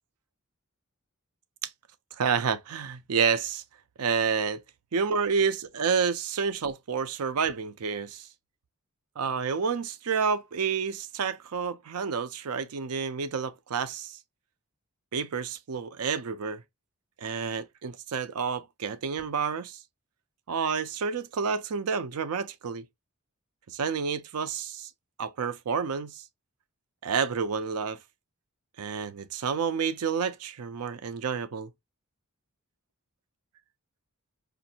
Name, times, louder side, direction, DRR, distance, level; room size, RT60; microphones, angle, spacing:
voice 1, 2.1-3.6 4.0-4.6 4.9-8.3 9.2-14.2 15.1-16.6 17.2-19.8 20.5-22.9 23.7-24.9 25.2-26.2 27.0-28.0 28.8-31.7, right 6 dB, 85° right, 0.5 m, -29 dB
5.1 x 2.5 x 2.8 m
head